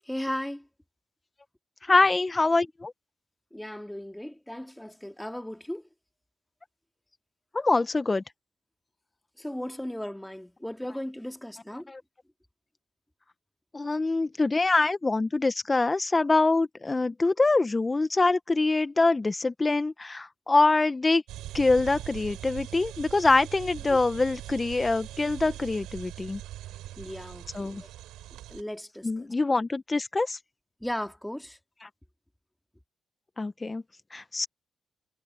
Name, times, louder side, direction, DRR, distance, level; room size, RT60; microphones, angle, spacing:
voice 1, 0.1-0.6 3.5-5.8 9.4-11.9 23.9-24.0 27.0-27.8 28.5-29.3 30.8-31.6, left 1 dB, 5° left, 2.8 m, -36 dB
voice 2, 1.8-2.9 7.5-8.2 11.9-12.0 13.7-21.2 21.5-26.4 27.5-27.8 29.0-30.4 31.8-31.9 33.4-33.8 34.1-34.5, left 3 dB, 30° left, 1.4 m, -24 dB
sound 1, 21.3-28.6, right 14 dB, 85° right, 5.4 m, -41 dB
supercardioid pair, 50°, 0 cm